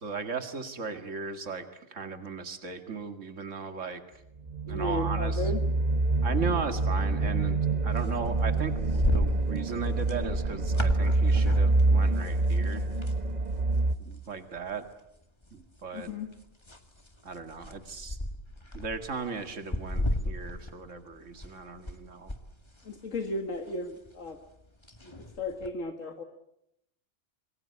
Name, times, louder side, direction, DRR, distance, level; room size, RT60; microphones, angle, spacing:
voice 1, 0.0-4.0 4.7-5.4 6.2-12.8 14.0-14.8 15.5-16.1 17.2-18.2 18.7-22.3, right 4 dB, 75° right, 7 dB, 2.4 m, -37 dB
sound 1, 4.5-13.9, right 2 dB, 35° right, 1.4 m, -26 dB
voice 2, 4.7-5.6 15.9-16.3 22.8-24.4 25.0-25.1 25.4-26.2, left 2 dB, 80° left, 5 dB, 2.1 m, -34 dB
sound 2, 7.9-13.2 13.6-13.7 14.1-14.9 15.4-22.0 22.3-25.7, left 1 dB, 20° left, 2.0 m, -35 dB
27.0 x 22.0 x 8.6 m, 0.80 s
omnidirectional pair, 1.3 m